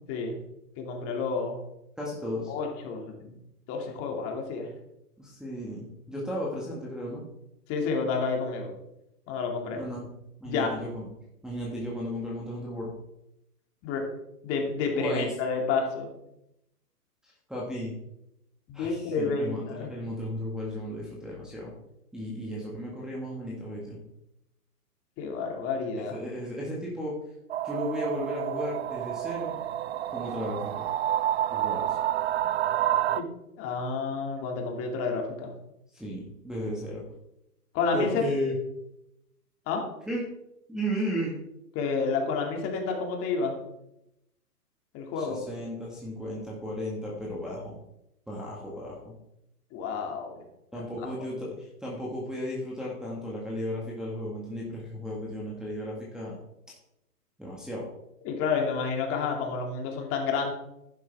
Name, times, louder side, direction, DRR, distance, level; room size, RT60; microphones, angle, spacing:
voice 1, 0.1-0.4 0.8-1.6 2.5-3.3 3.7-4.7 7.7-8.7 9.3-9.8 10.5-10.7 13.8-14.0 14.4-16.1 18.7-19.9 25.2-26.2 33.2-33.3 33.6-35.5 37.7-38.2 39.7-39.8 41.7-43.6 44.9-45.4 49.7-50.4 50.7-51.1 58.2-60.5, left 4 dB, 30° left, 2 dB, 2.4 m, -30 dB
voice 2, 2.0-2.5 5.2-7.2 9.7-10.0 10.4-11.1 11.4-12.9 14.9-15.3 17.2-17.9 18.7-21.7 22.1-24.0 26.1-27.1 27.6-29.5 30.1-30.9 31.5-32.0 35.9-37.0 37.9-38.5 40.1-40.2 40.7-41.3 45.2-47.7 48.3-49.1 50.7-56.4 57.4-57.9, equal, ahead, -6 dB, 1.8 m, -34 dB
sound 1, 27.5-33.2, right 12 dB, 45° right, 0.6 m, -29 dB
11.5 x 10.0 x 3.6 m, 0.84 s
hypercardioid pair, 130°, 47 cm